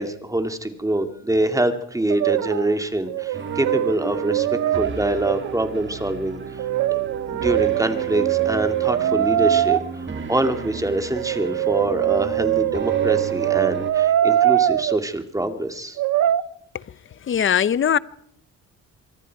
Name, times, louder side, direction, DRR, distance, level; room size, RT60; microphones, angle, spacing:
voice 1, 0.0-6.6 7.3-16.0, right 1 dB, 10° right, 2.3 m, -25 dB
Brass instrument, 2.1-2.8 3.1-5.6 6.6-9.8 11.2-15.0 16.0-16.4, right 12 dB, 70° right, 0.8 m, -22 dB
sound 1, 3.3-13.9, right 5 dB, 40° right, 3.0 m, -33 dB
voice 2, 17.3-18.0, left 8 dB, 40° left, 0.7 m, -19 dB
25.5 x 23.0 x 4.7 m
cardioid pair, 90°, 30 cm